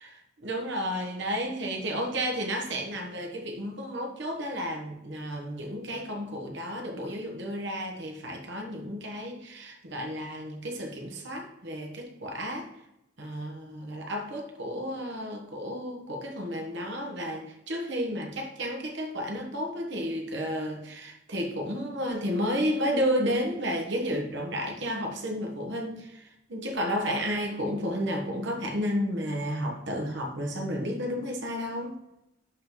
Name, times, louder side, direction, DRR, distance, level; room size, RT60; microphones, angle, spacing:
voice 1, 0.4-12.7 13.2-26.2 26.5-31.9, equal, 55° right, 1 dB, 1.1 m, -32 dB
11.0 x 3.7 x 3.0 m, 0.87 s
head